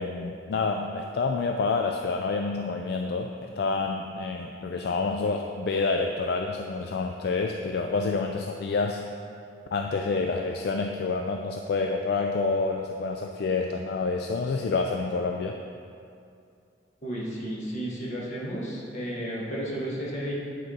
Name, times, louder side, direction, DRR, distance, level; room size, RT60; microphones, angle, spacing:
voice 1, 0.0-9.0 9.7-15.6, left 4 dB, 60° left, 3 dB, 0.3 m, -28 dB
voice 2, 17.0-20.3, right 1 dB, 40° left, -5 dB, 1.5 m, -33 dB
9.7 x 4.6 x 3.8 m, 2.4 s
head